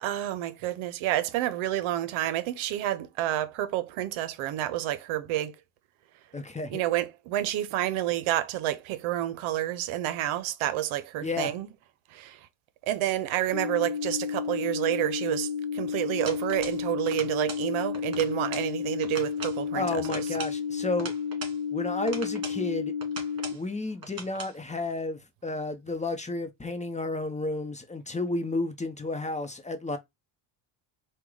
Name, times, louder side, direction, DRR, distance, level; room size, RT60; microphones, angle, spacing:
voice 1, 0.0-5.5 6.7-11.7 12.1-12.4 12.8-20.2, right 13 dB, 80° right, 0.7 m, -29 dB
voice 2, 6.3-6.8 11.2-11.6 19.7-21.1 21.7-22.9 23.5-30.0, left 2 dB, 15° left, 0.8 m, -32 dB
sound 1, 13.5-23.5, left 7 dB, 70° left, 1.0 m, -32 dB
sound 2, 16.3-16.8 17.1-17.7 17.9-18.7 19.0-19.6 20.0-21.6 22.1-22.6 23.0-23.6 24.0-24.5, right 4 dB, 45° right, 2.0 m, -40 dB
4.6 x 2.3 x 3.8 m
cardioid pair, 95°, 48 cm